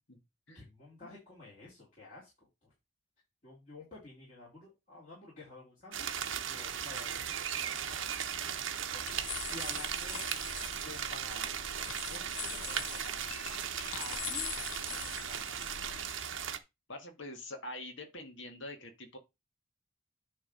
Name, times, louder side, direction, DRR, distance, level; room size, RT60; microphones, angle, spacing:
voice 1, 0.5-2.7 3.4-6.1 6.4-8.1 8.4-10.3 10.8-11.6 12.0-14.5 14.9-15.6, left 2 dB, 35° left, 3.8 m, -52 dB
sound 1, 5.9-16.6, right 8 dB, 65° right, 0.9 m, -37 dB
sound 2, 9.0-16.1, left 10 dB, 80° left, 0.6 m, -43 dB
voice 2, 16.9-19.2, left 1 dB, 60° left, 1.8 m, -45 dB
9.8 x 3.5 x 5.5 m
head